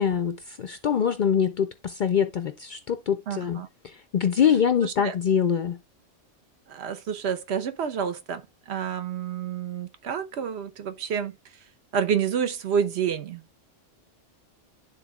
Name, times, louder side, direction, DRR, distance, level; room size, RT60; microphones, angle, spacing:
voice 1, 0.0-3.6 4.1-5.8, left 7 dB, 60° left, 0.5 m, -24 dB
voice 2, 3.3-3.7 4.8-5.1 6.7-11.3 11.9-13.4, right 7 dB, 60° right, 1.0 m, -29 dB
12.0 x 4.0 x 2.3 m
omnidirectional pair, 1.3 m